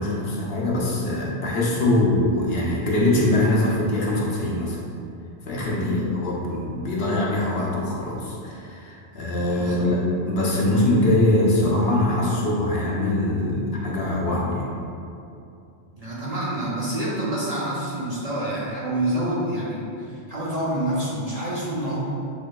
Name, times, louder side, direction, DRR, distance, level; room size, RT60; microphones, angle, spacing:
voice 1, 0.0-4.8 5.4-14.7, left 1 dB, 60° left, -4 dB, 1.0 m, -23 dB
voice 2, 5.7-6.0 9.5-9.9 15.9-22.0, right 1 dB, 40° right, -8 dB, 0.7 m, -27 dB
6.6 x 3.2 x 2.2 m, 2.6 s
omnidirectional pair, 1.2 m